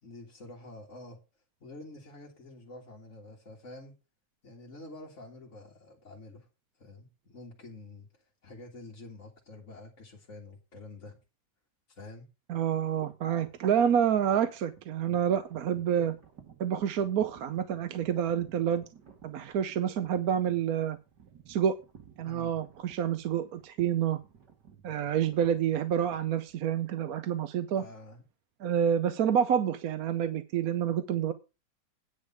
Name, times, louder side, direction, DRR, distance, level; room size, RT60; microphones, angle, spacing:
voice 1, 0.0-1.2 1.6-4.0 4.4-6.5 6.8-11.2 11.9-12.3 22.2-22.6 27.7-28.2, left 2 dB, 45° left, 2.2 m, -48 dB
voice 2, 12.5-16.2 16.6-18.8 19.2-21.0 21.5-21.8 22.2-24.2 24.8-27.8 28.6-31.3, right 9 dB, 65° right, 1.2 m, -28 dB
sound 1, 13.0-27.1, right 7 dB, 85° right, 2.5 m, -55 dB
9.7 x 5.1 x 7.0 m
omnidirectional pair, 1.8 m